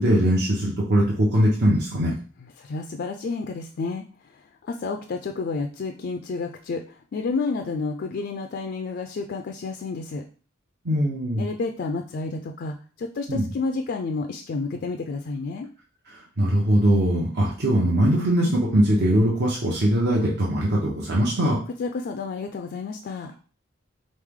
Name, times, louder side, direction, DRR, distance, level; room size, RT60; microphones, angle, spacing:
voice 1, 0.0-2.1 10.8-11.4 13.3-13.5 16.4-21.6, right 1 dB, 60° right, -3 dB, 0.8 m, -21 dB
voice 2, 2.4-10.2 11.4-15.7 21.8-23.3, left 4 dB, 50° left, 4 dB, 0.3 m, -30 dB
3.8 x 3.2 x 3.6 m, 0.40 s
head